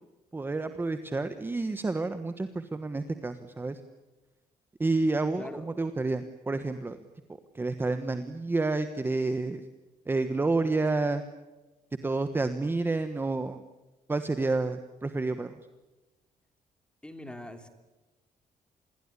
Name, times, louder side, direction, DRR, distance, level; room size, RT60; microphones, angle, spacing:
voice 1, 0.3-3.8 4.8-7.0 7.5-9.6 10.1-11.2 12.0-13.6 14.1-15.6, right 3 dB, 15° right, 9 dB, 1.2 m, -29 dB
voice 2, 17.0-17.7, left 1 dB, 5° left, 7 dB, 3.0 m, -42 dB
26.5 x 21.5 x 9.8 m, 1.1 s
cardioid pair, 160°, 15 cm